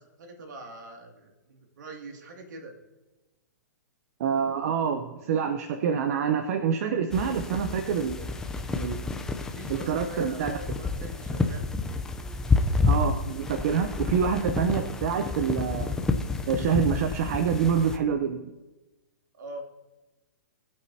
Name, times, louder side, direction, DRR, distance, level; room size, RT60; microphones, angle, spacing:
voice 1, 0.0-2.8 9.5-11.7 19.3-19.6, right 2 dB, 70° right, 2 dB, 2.5 m, -43 dB
voice 2, 4.2-8.3 8.7-9.1 9.7-10.5 12.9-15.9 16.5-18.5, right 7 dB, 50° right, 8 dB, 0.8 m, -26 dB
sound 1, 7.1-18.0, left 3 dB, 5° left, 0.6 m, -29 dB
21.5 x 8.5 x 2.8 m, 1.1 s
hypercardioid pair, 145°, 10 cm